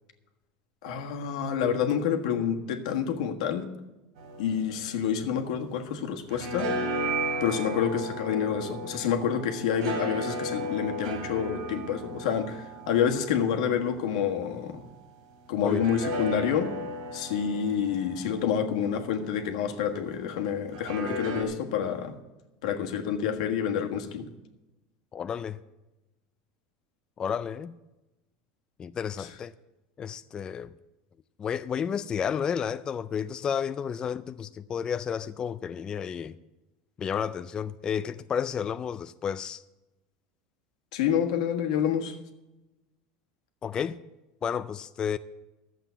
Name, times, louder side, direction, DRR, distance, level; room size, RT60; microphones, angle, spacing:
voice 1, 0.8-3.7 4.4-6.7 7.4-14.8 15.5-16.7 17.1-22.1 22.6-24.3 29.2-29.3 40.9-42.1, left 8 dB, 85° left, 1.5 m, -28 dB
sound 1, 4.2-5.8 6.1-14.8 15.7-19.7 20.7-21.4, right 1 dB, 80° right, 2.8 m, -35 dB
voice 2, 25.1-25.6 27.2-27.8 28.8-29.5 30.0-30.7 31.4-36.4 37.0-39.6 43.6-44.0 44.4-45.2, left 7 dB, 20° left, 0.3 m, -31 dB
12.0 x 7.7 x 8.1 m
supercardioid pair, 155°, 4 cm